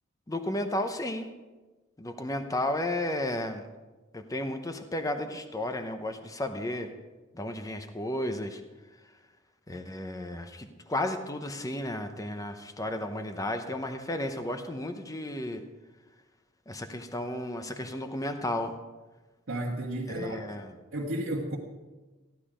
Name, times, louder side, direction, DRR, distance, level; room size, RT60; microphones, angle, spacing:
voice 1, 0.3-1.3 2.0-3.6 4.1-6.9 7.3-8.6 9.7-15.6 16.7-18.7 20.1-20.7, left 1 dB, 15° left, 7 dB, 0.8 m, -33 dB
voice 2, 19.5-20.7 20.9-21.6, right 1 dB, 70° right, -5 dB, 1.5 m, -33 dB
15.0 x 10.5 x 5.0 m, 1.2 s
head